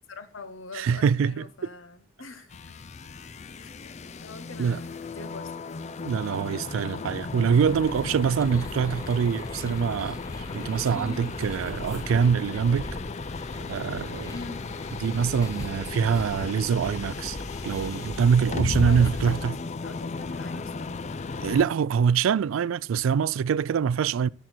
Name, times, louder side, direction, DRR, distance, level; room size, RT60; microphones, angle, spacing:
voice 1, 0.1-2.8 3.6-3.7 4.2-5.5 14.3-14.7 18.8-21.2, left 3 dB, 80° left, 1.0 m, -43 dB
voice 2, 0.7-1.5 4.6-4.8 6.0-12.9 13.7-14.3 15.0-17.4 17.6-19.6 21.4-24.3, right 6 dB, 85° right, 0.3 m, -24 dB
sound 1, 2.5-21.6, left 4 dB, 35° left, 0.4 m, -35 dB
sound 2, 7.5-19.4, left 1 dB, 20° left, 1.0 m, -40 dB
10.5 x 6.2 x 4.4 m
head